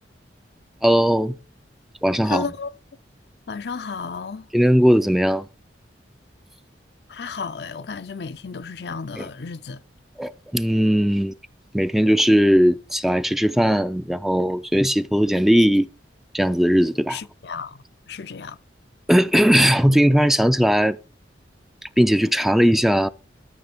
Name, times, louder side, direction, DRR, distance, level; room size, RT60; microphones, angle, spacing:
voice 1, 0.8-1.3 2.0-2.4 4.5-5.5 9.2-9.3 10.2-11.3 11.7-15.9 16.3-17.2 19.1-21.0 21.8-23.1, equal, ahead, 0.4 m, -18 dB
voice 2, 2.2-2.7 3.5-4.5 7.1-9.8 17.1-18.6, left 5 dB, 65° left, 0.6 m, -33 dB
13.5 x 6.9 x 5.0 m
head